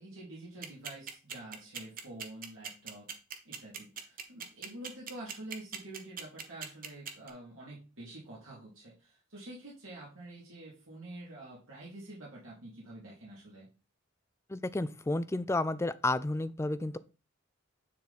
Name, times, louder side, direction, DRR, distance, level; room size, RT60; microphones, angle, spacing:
voice 1, 0.0-3.1 3.4-13.7, right 1 dB, 75° right, -5 dB, 2.9 m, -47 dB
sound 1, 0.6-7.3, right 7 dB, 45° right, 1.0 m, -40 dB
voice 2, 14.5-17.0, left 2 dB, 15° left, 14 dB, 0.3 m, -31 dB
9.5 x 3.9 x 4.2 m, 0.32 s
head